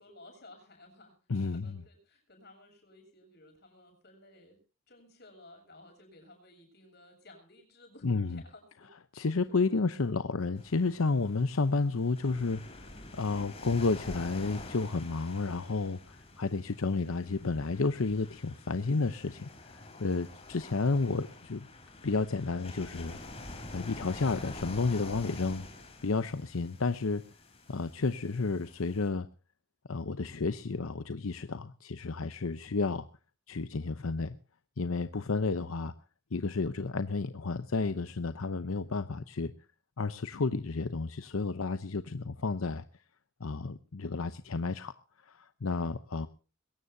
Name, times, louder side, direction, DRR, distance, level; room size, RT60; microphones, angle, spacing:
voice 1, 0.0-1.2 1.4-4.6 4.9-8.9 9.1-9.8, left 2 dB, 50° left, 3 dB, 7.6 m, -56 dB
voice 2, 1.3-1.8 8.0-8.4 9.1-21.7 22.0-23.2 23.7-25.7 26.0-27.2 27.7-29.3 29.9-33.1 33.5-34.3 34.8-35.9 36.3-39.5 40.0-42.8 43.4-44.9 45.3-46.3, left 3 dB, 85° left, 11 dB, 0.8 m, -31 dB
sound 1, 10.6-29.1, left 2 dB, 30° left, 3.8 m, -47 dB
22.0 x 18.0 x 2.7 m, 0.35 s
head